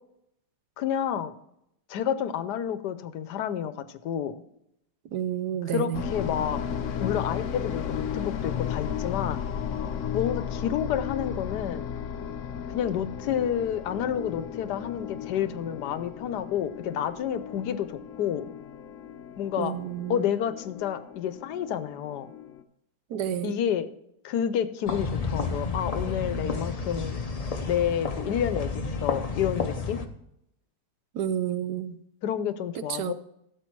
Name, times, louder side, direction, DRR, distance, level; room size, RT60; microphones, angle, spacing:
voice 1, 0.8-1.3 1.9-4.4 5.7-6.6 7.0-9.4 10.1-11.9 12.7-18.5 19.4-19.7 20.1-22.3 23.4-23.9 24.2-27.2 27.7-30.0 32.2-33.1, left 9 dB, 75° left, 13 dB, 1.3 m, -29 dB
voice 2, 5.1-6.1 19.6-20.2 23.1-23.6 31.1-32.0 32.7-33.1, right 10 dB, 75° right, 13 dB, 1.2 m, -30 dB
sound 1, 5.9-22.6, left 8 dB, 60° left, 0.9 m, -35 dB
sound 2, 24.9-30.0, left 4 dB, 40° left, 0.5 m, -31 dB
14.0 x 7.3 x 4.5 m, 0.78 s
omnidirectional pair, 1.8 m